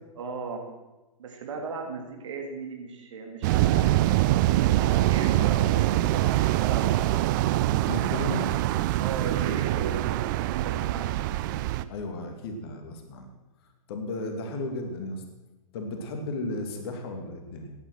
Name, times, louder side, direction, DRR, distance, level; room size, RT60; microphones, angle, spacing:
voice 1, 0.2-0.6 1.2-4.0 4.7-7.2 8.0-8.4 9.0-11.2, right 4 dB, 55° right, 2 dB, 3.3 m, -37 dB
sound 1, 3.4-11.8, right 15 dB, 35° right, 0.6 m, -24 dB
voice 2, 7.9-8.4 11.9-13.3 13.9-15.2 15.7-17.7, left 2 dB, 40° left, 4 dB, 2.5 m, -34 dB
15.5 x 10.0 x 6.4 m, 1.1 s
figure-of-eight pair, 110°, 19 cm